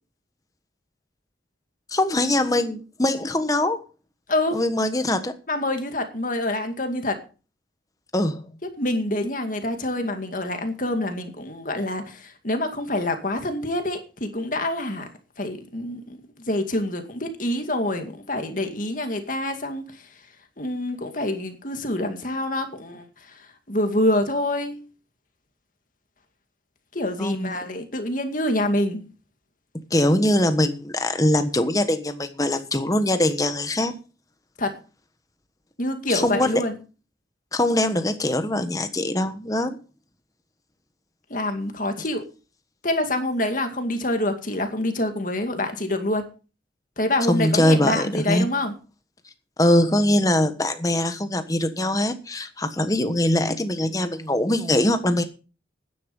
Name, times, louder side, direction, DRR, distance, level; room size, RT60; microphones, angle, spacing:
voice 1, 1.9-3.8 4.5-5.3 8.1-8.4 27.2-27.6 29.9-33.9 36.1-36.6 37.5-39.8 47.3-48.5 49.6-55.2, left 1 dB, 20° left, 1.3 m, -22 dB
voice 2, 5.5-7.2 8.8-15.1 15.4-16.2 16.4-19.8 20.6-24.8 26.9-29.0 34.6-34.7 35.8-36.8 41.3-42.2 42.8-46.3 47.0-48.7, left 1 dB, 45° left, 2.2 m, -26 dB
12.0 x 10.0 x 5.4 m
head